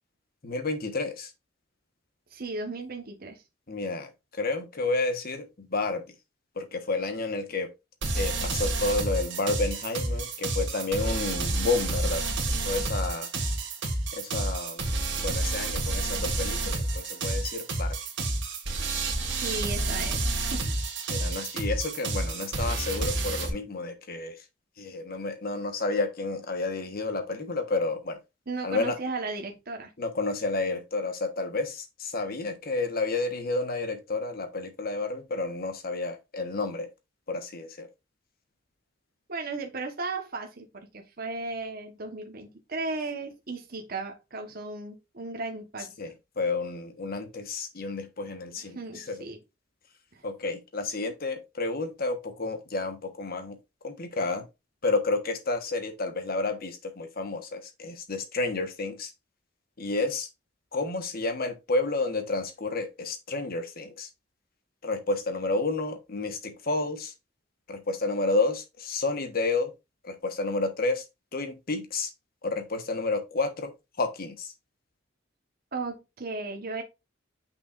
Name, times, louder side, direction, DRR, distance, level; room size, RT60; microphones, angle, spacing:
voice 1, 0.4-1.3 3.7-6.0 6.6-7.7 8.1-12.2 12.6-13.3 14.1-14.8 15.2-17.9 21.1-24.4 24.8-28.2 28.6-29.0 30.0-36.9 37.3-37.9 46.0-49.2 50.2-53.6 53.8-54.5 54.8-59.1 59.8-60.3 60.7-64.1 64.8-67.1 67.7-69.7 70.0-71.0 71.3-72.1 72.4-73.7 74.0-74.5, left 3 dB, 50° left, 1.2 m, -30 dB
voice 2, 2.3-3.4 19.3-20.8 28.5-29.9 39.3-45.9 48.6-49.4 50.1-50.3 75.7-76.8, right 3 dB, 50° right, 1.2 m, -35 dB
sound 1, 8.0-23.5, right 2 dB, 65° right, 1.9 m, -30 dB
7.1 x 5.9 x 2.5 m
head